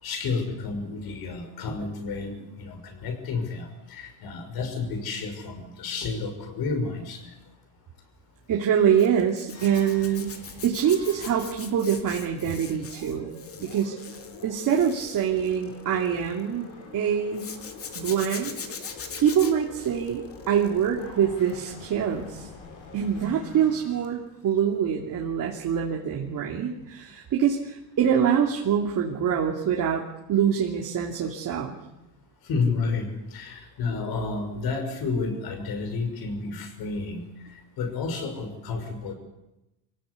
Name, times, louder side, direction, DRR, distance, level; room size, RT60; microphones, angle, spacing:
voice 1, 0.0-7.3 16.1-16.2 32.4-39.1, left 4 dB, 50° left, 7 dB, 5.8 m, -31 dB
voice 2, 8.5-10.4 10.6-13.3 13.6-13.9 14.4-16.6 16.9-17.5 17.9-18.5 19.2-22.5 22.9-30.0 30.3-31.8, right 8 dB, 40° right, -1 dB, 3.0 m, -25 dB
Zipper (clothing), 9.0-16.4 17.3-21.0 21.4-21.7 24.0-24.2 24.5-24.6, left 6 dB, 30° left, 2.4 m, -41 dB
sound 1, 9.5-24.0, left 4 dB, 75° left, 7.8 m, -45 dB
25.0 x 17.5 x 8.4 m, 0.96 s
cardioid pair, 140°, 48 cm